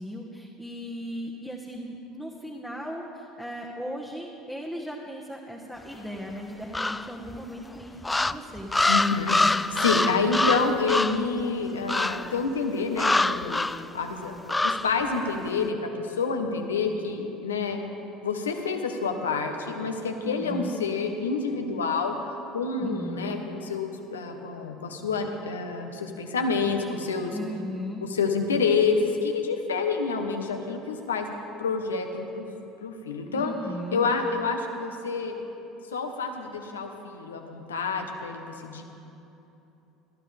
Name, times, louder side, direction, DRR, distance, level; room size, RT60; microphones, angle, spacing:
voice 1, 0.0-7.9 8.2-8.7 20.2-20.8 22.8-23.5 27.3-28.0 33.3-34.1, equal, 5° right, -2 dB, 1.4 m, -37 dB
sound 1, 6.7-7.4 8.0-11.3 11.9-12.3 13.0-13.8 14.5-14.9, left 2 dB, 15° left, 0.3 m, -25 dB
voice 2, 8.9-13.7 13.9-14.3 14.6-17.8 18.2-22.1 22.5-27.3 28.0-31.3 31.6-32.5 32.8-33.5 33.9-35.4 35.9-38.8, left 4 dB, 90° left, 4 dB, 1.0 m, -28 dB
18.5 x 12.5 x 3.5 m, 3.0 s
hypercardioid pair, 70°, 0 cm